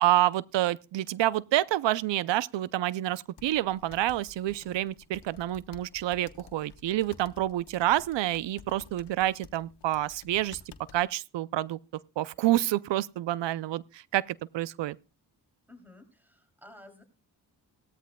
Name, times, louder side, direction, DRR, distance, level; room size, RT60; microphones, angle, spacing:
voice 1, 0.0-10.6 10.9-11.8 12.2-15.0, right 14 dB, 80° right, 0.5 m, -28 dB
sound 1, 3.4-11.1, left 6 dB, 70° left, 1.2 m, -53 dB
voice 2, 15.7-17.0, left 1 dB, 5° right, 2.8 m, -52 dB
17.5 x 13.5 x 2.2 m
cardioid pair, 55°, 43 cm